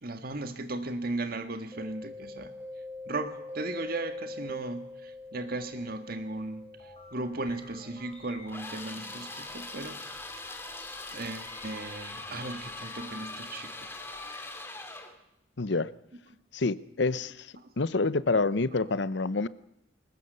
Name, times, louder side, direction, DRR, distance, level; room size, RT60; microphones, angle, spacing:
voice 1, 0.0-2.5 3.1-10.0 11.1-14.0 17.6-17.7, right 2 dB, 50° right, 8 dB, 1.8 m, -36 dB
Mallet percussion, 1.7-11.3, left 2 dB, 10° right, 3.6 m, -45 dB
sound 1, 6.8-14.5, left 2 dB, 30° left, 4.0 m, -53 dB
sound 2, 8.5-15.2, left 2 dB, 10° left, 2.3 m, -41 dB
voice 2, 15.6-15.9 16.5-19.5, left 3 dB, 60° left, 17 dB, 0.8 m, -28 dB
21.0 x 19.5 x 6.9 m, 0.82 s
head